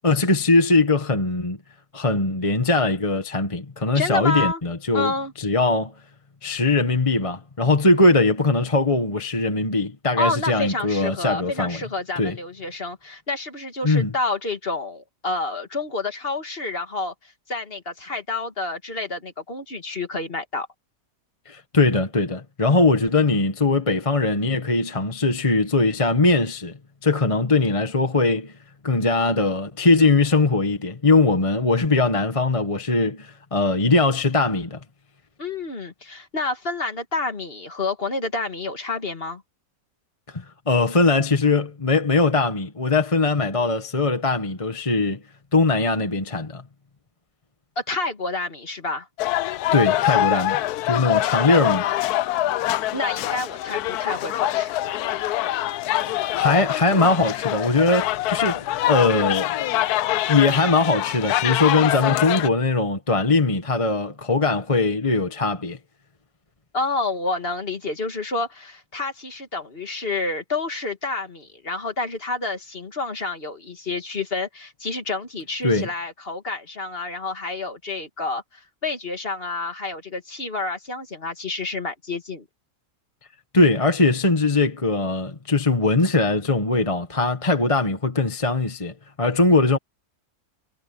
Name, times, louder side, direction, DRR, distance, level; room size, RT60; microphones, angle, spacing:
voice 1, 0.0-1.6 1.9-5.1 5.4-5.9 6.4-11.8 12.2-12.4 13.8-14.1 21.5-28.5 28.8-34.8 40.3-45.2 45.5-46.6 49.7-50.6 50.8-51.9 56.3-59.8 60.3-65.8 75.6-75.9 83.5-89.8, left 3 dB, 25° left, 1.3 m, -21 dB
voice 2, 3.9-4.6 4.9-5.3 10.2-20.7 35.4-39.4 47.8-49.1 52.9-54.7 66.7-82.4, left 3 dB, 40° left, 2.2 m, -29 dB
sound 1, 49.2-62.5, left 14 dB, 90° left, 1.1 m, -24 dB
omnidirectional pair, 1.6 m